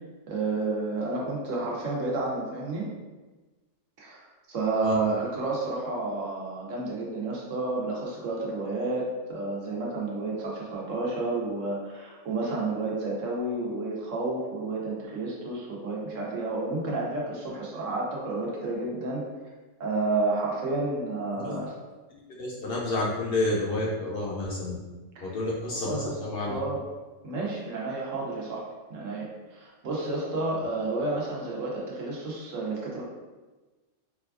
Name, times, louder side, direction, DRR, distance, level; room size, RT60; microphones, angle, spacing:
voice 1, 0.3-2.9 4.0-19.2 19.8-21.7 25.1-25.4 25.7-26.2 26.5-26.8 27.2-28.6 28.9-33.0, right 3 dB, 75° right, -3 dB, 1.1 m, -31 dB
voice 2, 22.1-24.8 25.2-26.6, left 2 dB, 60° left, -4 dB, 0.6 m, -30 dB
4.1 x 2.3 x 2.4 m, 1.2 s
omnidirectional pair, 1.3 m